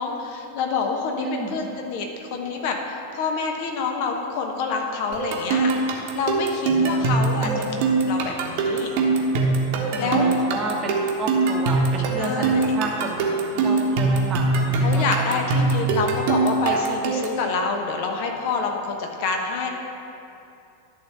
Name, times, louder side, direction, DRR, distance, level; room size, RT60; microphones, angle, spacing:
voice 1, 0.0-2.0 2.3-7.6 8.1-8.9 10.0-10.3 12.1-12.7 14.8-19.7, left 4 dB, 45° left, 3 dB, 1.0 m, -27 dB
voice 2, 1.2-1.6 6.8-7.2 7.4-7.7 9.9-15.4 16.7-16.8, right 3 dB, 25° right, 0 dB, 1.0 m, -31 dB
sound 1, 5.1-17.4, right 3 dB, 50° right, 1.1 m, -22 dB
11.5 x 3.8 x 7.0 m, 2.7 s
figure-of-eight pair, 90°, 0 cm